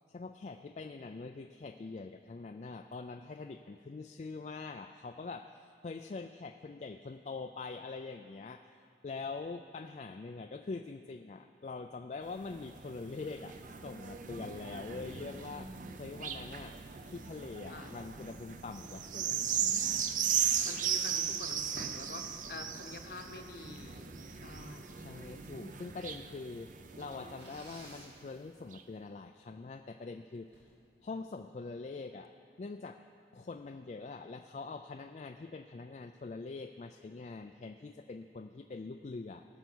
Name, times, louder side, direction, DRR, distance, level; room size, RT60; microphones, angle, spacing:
voice 1, 0.1-8.8 9.0-13.6 13.8-16.8 17.1-19.5 24.9-30.7 31.0-32.3 32.6-33.0 33.3-39.4, left 3 dB, 40° left, 6 dB, 0.3 m, -44 dB
sound 1, 12.3-28.1 28.7-28.8, right 8 dB, 45° right, 0.6 m, -37 dB
voice 2, 17.7-18.0 20.6-25.1, left 3 dB, 55° left, 5 dB, 1.0 m, -47 dB
sound 2, 18.5-19.4 20.3-21.7 22.3-22.4 22.7-23.1 23.4-24.3 24.9-25.1 25.4-25.5 26.1-26.2 26.5-26.6 27.3-28.2 30.5-30.8, right 2 dB, 80° right, 2.5 m, -55 dB
18.5 x 6.8 x 6.1 m, 2.6 s
head